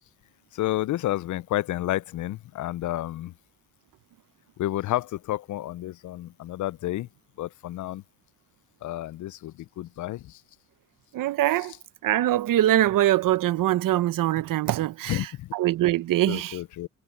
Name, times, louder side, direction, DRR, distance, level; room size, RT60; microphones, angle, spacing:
voice 1, 0.5-3.3 4.6-7.1 7.4-8.0 8.8-10.4 15.1-15.5 16.3-16.9, left 15 dB, 60° left, 0.4 m, -30 dB
voice 2, 11.1-11.7 12.0-15.3 15.5-16.6, right 14 dB, 70° right, 0.7 m, -23 dB
cardioid pair, 115°, 34 cm